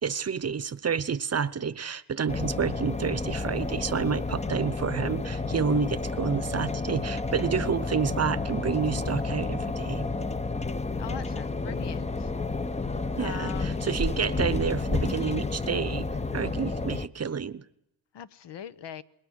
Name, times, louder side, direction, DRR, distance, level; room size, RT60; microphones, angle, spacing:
voice 1, 0.0-10.1 13.2-16.1 16.3-17.6, right 6 dB, 35° right, 1.0 m, -29 dB
sound 1, 2.3-17.1, left 3 dB, 15° left, 0.8 m, -31 dB
voice 2, 11.0-12.3 13.2-13.8 18.1-19.0, left 9 dB, 60° left, 1.1 m, -41 dB
28.0 x 21.0 x 6.5 m
cardioid pair, 100°, 46 cm